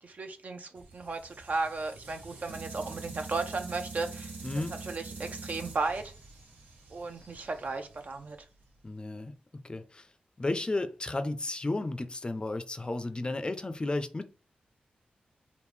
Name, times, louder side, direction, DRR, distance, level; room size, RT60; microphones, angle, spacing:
voice 1, 0.0-6.1 6.9-8.4, right 3 dB, 55° right, 0.6 m, -35 dB
sound 1, 0.7-8.8, right 3 dB, 90° right, 0.8 m, -45 dB
voice 2, 8.8-9.3 9.6-10.1 10.4-14.2, left 2 dB, 30° left, 0.5 m, -33 dB
3.5 x 2.5 x 3.2 m
cardioid pair, 60°, 3 cm